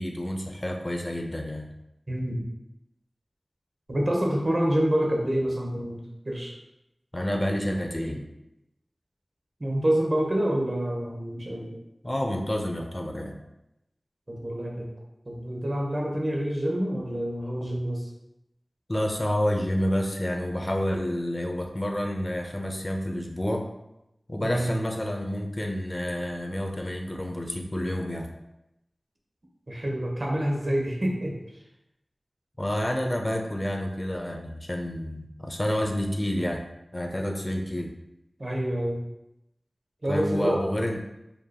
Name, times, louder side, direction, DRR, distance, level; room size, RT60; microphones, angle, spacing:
voice 1, 0.0-1.7 7.1-8.2 12.0-13.4 18.9-23.7 24.3-28.3 32.6-36.6 36.9-37.9 40.1-41.0, equal, 25° left, 3 dB, 0.6 m, -29 dB
voice 2, 2.1-2.4 3.9-6.5 9.6-11.8 14.3-14.9 15.3-18.1 24.4-24.7 29.7-31.4 38.4-39.0 40.0-40.6, right 1 dB, 50° right, -1 dB, 1.0 m, -27 dB
5.1 x 2.9 x 2.3 m, 0.89 s
wide cardioid pair, 45°, 0 cm